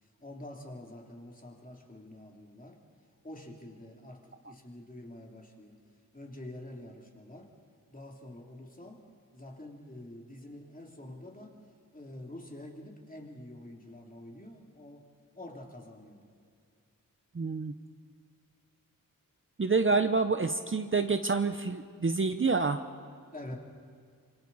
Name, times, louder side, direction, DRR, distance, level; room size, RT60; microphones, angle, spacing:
voice 1, 0.0-2.8 3.2-5.8 6.1-7.5 7.9-9.1 9.3-11.6 11.9-15.1 15.3-16.3 23.3-23.6, left 1 dB, 25° left, 1 dB, 3.0 m, -47 dB
voice 2, 17.3-17.7 19.6-22.8, right 4 dB, 35° right, 8 dB, 0.8 m, -27 dB
27.0 x 24.5 x 4.2 m, 2.2 s
wide cardioid pair, 80°, 34 cm